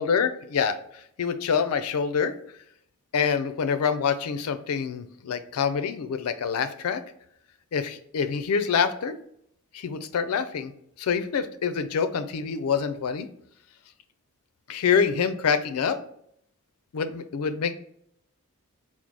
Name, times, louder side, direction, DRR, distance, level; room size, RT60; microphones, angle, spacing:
voice 1, 0.0-2.3 3.1-7.0 7.7-9.2 9.7-10.7 11.0-13.3 14.7-16.0 16.9-17.7, left 6 dB, 85° left, 10 dB, 0.4 m, -26 dB
4.6 x 2.0 x 3.9 m, 0.70 s
head